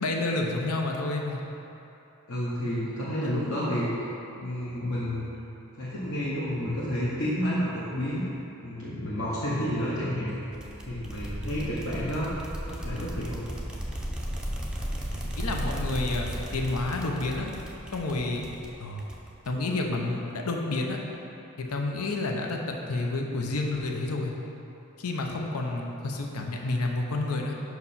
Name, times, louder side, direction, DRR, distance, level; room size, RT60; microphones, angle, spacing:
voice 1, 0.0-1.4 3.2-3.3 15.4-17.5 17.9-18.5 18.8-19.0 19.5-21.0 21.6-22.6 22.9-24.3 25.0-27.5, left 2 dB, 85° left, 1 dB, 0.7 m, -29 dB
voice 2, 2.3-4.0 4.4-5.3 5.8-8.3 8.6-10.4 10.9-12.3 12.6-13.4 18.2-18.4, equal, 60° left, -9 dB, 1.0 m, -30 dB
sound 1, 10.5-19.8, equal, 5° right, 0.4 m, -35 dB
5.4 x 4.7 x 5.5 m, 3.0 s
head